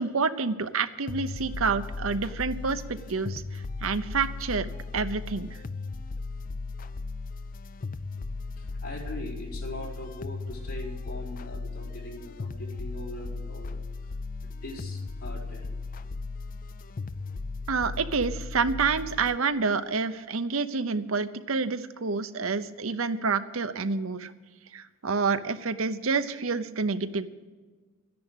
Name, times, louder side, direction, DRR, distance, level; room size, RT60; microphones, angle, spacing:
voice 1, 0.0-4.7 4.9-5.5 17.7-24.3 24.7-27.3, right 4 dB, 70° right, 11 dB, 0.8 m, -28 dB
sound 1, 1.1-19.4, left 3 dB, 40° left, 0.5 m, -37 dB
voice 2, 8.6-14.1 14.4-15.8, left 1 dB, 85° left, -5 dB, 4.6 m, -41 dB
13.0 x 10.5 x 8.1 m, 1.4 s
head